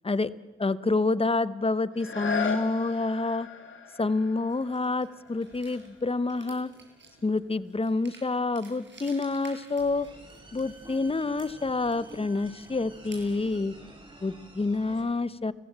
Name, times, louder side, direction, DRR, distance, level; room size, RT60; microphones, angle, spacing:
voice 1, 0.6-3.5 4.0-6.7 7.2-10.1 10.5-13.7 14.2-15.5, left 3 dB, 25° left, 15 dB, 1.0 m, -28 dB
sound 1, 1.9-7.6 8.1-8.2, left 5 dB, 65° left, 2.8 m, -37 dB
sound 2, 4.5-13.6, right 3 dB, 60° right, 6.7 m, -54 dB
sound 3, 9.8-15.0, right 1 dB, 25° right, 7.3 m, -49 dB
30.0 x 15.5 x 7.5 m, 1.2 s
cardioid pair, 50°, 21 cm